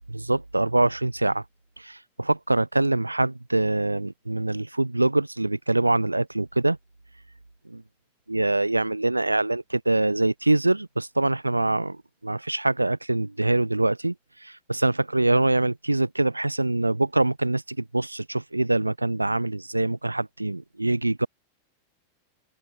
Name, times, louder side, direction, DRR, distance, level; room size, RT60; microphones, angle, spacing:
voice 1, 0.1-1.4 1.8-6.8 7.7-7.8 8.3-14.1 14.4-21.3, right 2 dB, 85° right, 0.4 m, -24 dB
open air
figure-of-eight pair, 90°, 0 cm